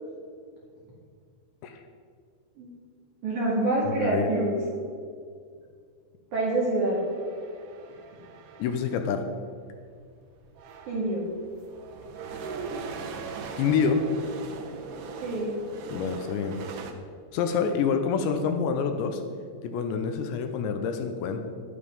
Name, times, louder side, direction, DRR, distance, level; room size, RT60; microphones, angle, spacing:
voice 1, 3.2-4.6 6.3-7.0 10.9-11.2 15.2-15.5, right 2 dB, 50° right, -5 dB, 2.8 m, -26 dB
voice 2, 3.9-4.3 8.6-9.2 13.6-14.0 15.9-16.6 17.3-19.2 19.6-21.4, left 6 dB, 80° left, 6 dB, 2.9 m, -27 dB
sound 1, 6.9-9.1 10.0-10.1 10.4-16.9, right 4 dB, 85° right, 1.8 m, -40 dB
12.0 x 11.5 x 5.3 m, 2.1 s
omnidirectional pair, 5.4 m